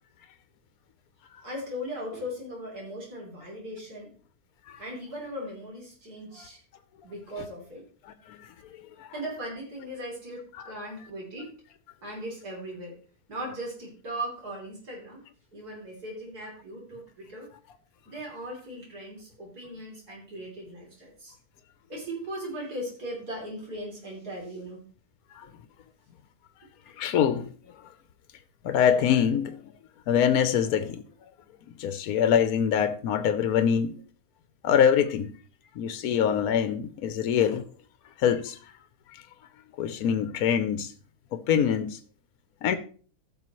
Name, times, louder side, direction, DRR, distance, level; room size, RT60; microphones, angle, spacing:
voice 1, 1.4-4.1 4.8-6.6 7.0-7.9 9.1-11.5 12.0-13.0 13.3-15.2 15.5-17.5 18.1-21.3 21.9-24.8, equal, 80° right, 3.8 m, -38 dB
voice 2, 8.0-8.5 9.0-9.1 10.6-10.7 25.3-25.5 27.0-27.5 28.6-29.6 30.1-31.0 31.8-34.0 34.6-35.3 35.8-37.6 38.2-38.6 39.8-40.9 41.3-42.0 42.6-42.8, left 8 dB, 75° left, 1.2 m, -24 dB
15.0 x 6.3 x 3.0 m
omnidirectional pair, 1.6 m